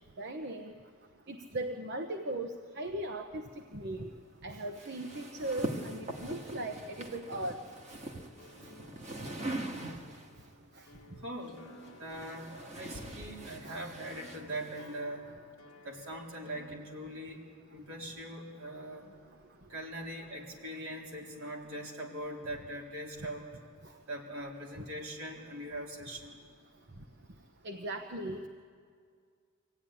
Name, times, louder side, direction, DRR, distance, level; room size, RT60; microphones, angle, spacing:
voice 1, 0.2-0.7 1.3-3.4 3.7-4.1 4.4-7.6 10.8-10.9 13.6-13.8 27.6-28.5, right 1 dB, 50° right, 6 dB, 0.9 m, -38 dB
sound 1, 4.7-10.4 11.4-15.0, right 1 dB, 30° right, 1.7 m, -42 dB
sound 2, 5.9-16.7, left 2 dB, 65° left, 1.3 m, -57 dB
voice 2, 11.2-11.6 12.0-12.5 12.7-15.3 15.8-17.4 17.7-19.1 19.7-23.5 24.1-26.4, right 1 dB, 70° right, -1 dB, 3.7 m, -41 dB
24.5 x 16.0 x 10.0 m, 2.1 s
head